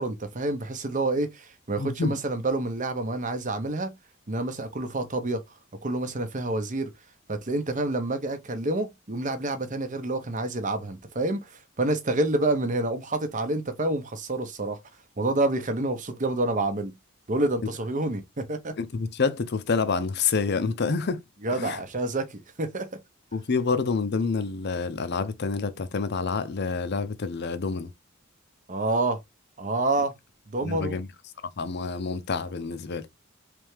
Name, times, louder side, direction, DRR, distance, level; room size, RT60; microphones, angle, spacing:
voice 1, 0.0-3.9 4.3-5.4 5.8-6.9 7.3-14.8 15.2-17.0 17.3-18.8 21.4-22.9 28.7-29.2 29.6-30.1 30.5-31.0, right 2 dB, 35° right, 0.8 m, -28 dB
voice 2, 1.8-2.2 18.8-21.2 21.6-21.8 23.3-27.9 30.6-31.1 31.6-33.1, left 4 dB, 50° left, 0.6 m, -28 dB
3.4 x 3.3 x 3.1 m
head